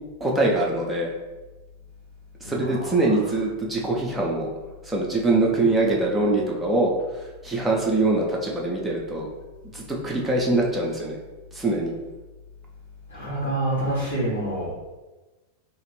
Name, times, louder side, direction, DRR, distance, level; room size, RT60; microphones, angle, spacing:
voice 1, 0.2-1.1 2.4-4.5 4.8-6.9 7.4-9.3 9.7-11.2 11.5-11.9, right 2 dB, 10° right, -3 dB, 0.7 m, -23 dB
voice 2, 2.4-3.2 13.1-14.7, right 1 dB, 75° left, -12 dB, 1.4 m, -27 dB
2.9 x 2.5 x 3.2 m, 1.2 s
figure-of-eight pair, 90°, 0 cm